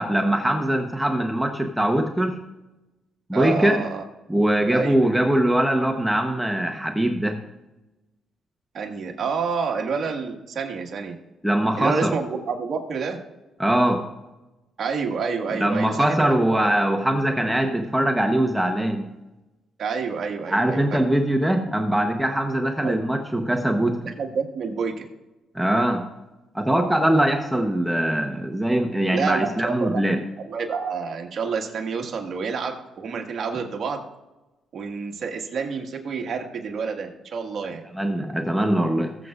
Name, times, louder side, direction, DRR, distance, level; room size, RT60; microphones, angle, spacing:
voice 1, 0.0-2.4 3.3-3.8 4.3-7.4 11.4-12.2 13.6-14.1 15.5-19.1 20.5-24.0 25.5-26.1 26.5-30.2 37.9-39.3, right 1 dB, 5° right, 4 dB, 0.9 m, -22 dB
voice 2, 3.3-4.0 4.7-5.0 8.7-11.2 11.8-13.2 14.8-16.7 19.8-20.9 22.8-23.0 24.0-25.0 29.1-30.0 30.4-34.0 34.7-37.8, right 5 dB, 55° right, 3 dB, 1.6 m, -28 dB
19.5 x 7.7 x 2.4 m, 1.0 s
cardioid pair, 90°, 0 cm